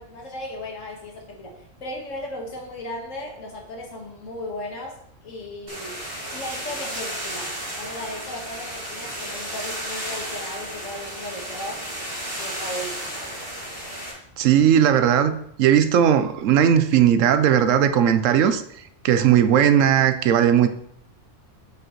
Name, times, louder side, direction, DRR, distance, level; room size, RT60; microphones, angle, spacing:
voice 1, 0.0-6.0 6.3-7.5 7.8-11.8 12.4-13.2, left 1 dB, 85° left, 0 dB, 1.9 m, -36 dB
sound 1, 5.7-14.1, right 1 dB, 45° right, 2.4 m, -33 dB
voice 2, 14.4-18.6 19.0-20.7, right 9 dB, 90° right, 10 dB, 1.0 m, -17 dB
7.3 x 6.4 x 3.1 m, 0.70 s
omnidirectional pair, 1.3 m